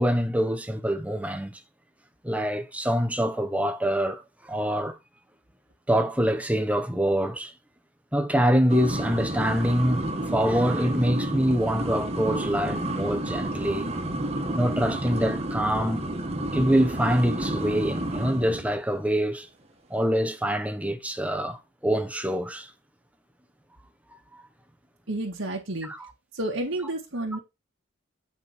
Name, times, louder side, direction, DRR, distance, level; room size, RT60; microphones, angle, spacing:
voice 1, 0.0-1.6 2.2-5.0 5.9-7.5 8.1-13.9 14.6-16.1 16.5-19.5 19.9-22.7 24.3-24.4 25.8-26.1, equal, 5° right, 1.1 m, -25 dB
sound 1, 8.7-18.7, right 1 dB, 30° right, 1.6 m, -30 dB
voice 2, 25.1-25.9 26.3-27.4, right 1 dB, 75° right, 2.0 m, -30 dB
9.3 x 5.3 x 4.4 m
head